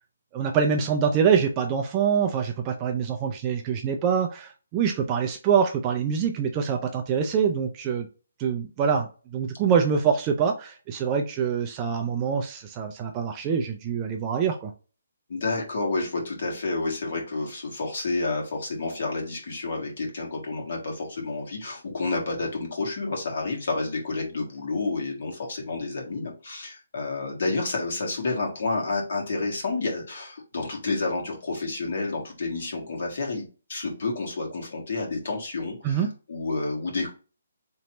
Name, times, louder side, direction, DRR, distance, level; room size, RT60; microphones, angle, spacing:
voice 1, 0.3-8.1 8.4-14.7 35.8-36.1, right 7 dB, 15° right, 4 dB, 0.3 m, -25 dB
voice 2, 15.3-37.1, left 3 dB, 45° left, 0 dB, 1.6 m, -30 dB
4.4 x 3.1 x 2.9 m, 0.34 s
hypercardioid pair, 180°, 0 cm